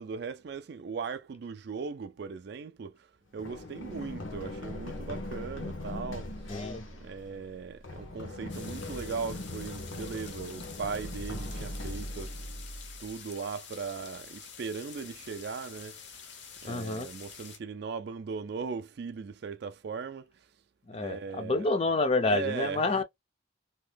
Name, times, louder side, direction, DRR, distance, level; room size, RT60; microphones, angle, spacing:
voice 1, 0.0-6.3 7.0-12.4 13.0-16.0 16.6-20.5 20.9-21.7 22.2-23.0, right 5 dB, 55° right, 0.3 m, -38 dB
Run, 3.4-13.1, left 1 dB, 80° left, 0.9 m, -40 dB
voice 2, 6.5-6.8 16.7-17.1 20.9-23.0, left 3 dB, 30° left, 0.4 m, -28 dB
sound 1, 8.5-17.6, left 6 dB, 60° left, 0.7 m, -48 dB
2.8 x 2.2 x 3.3 m
head